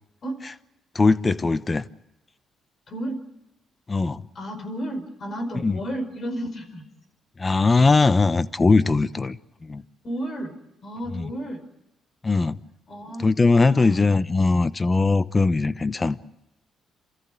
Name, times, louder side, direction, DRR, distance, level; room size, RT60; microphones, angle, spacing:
voice 1, 0.9-1.8 3.9-4.3 5.6-5.8 7.4-9.8 11.1-11.3 12.2-12.6 13.2-16.2, left 3 dB, 25° left, 0.9 m, -20 dB
voice 2, 2.9-3.2 4.3-6.8 10.0-10.5 10.8-11.6 12.9-14.0, right 1 dB, 45° left, 5.1 m, -32 dB
28.5 x 14.5 x 9.5 m
cardioid pair, 90°, 0 cm